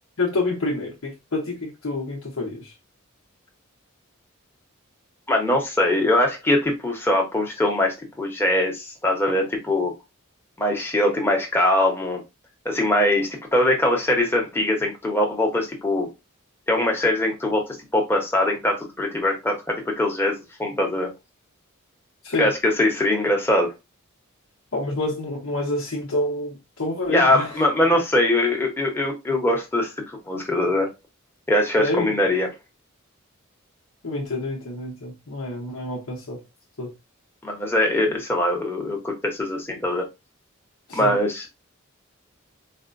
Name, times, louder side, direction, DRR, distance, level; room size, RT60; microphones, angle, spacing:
voice 1, 0.2-2.7 22.2-22.5 24.7-27.6 31.7-32.1 34.0-36.4 36.8-36.9 40.9-41.2, left 2 dB, 80° left, 0.8 m, -27 dB
voice 2, 5.3-9.9 10.6-12.2 12.6-16.1 16.7-21.1 22.4-23.7 27.1-30.9 31.5-32.5 37.4-40.1 40.9-41.5, left 1 dB, 10° left, 0.9 m, -22 dB
4.1 x 2.1 x 2.5 m
head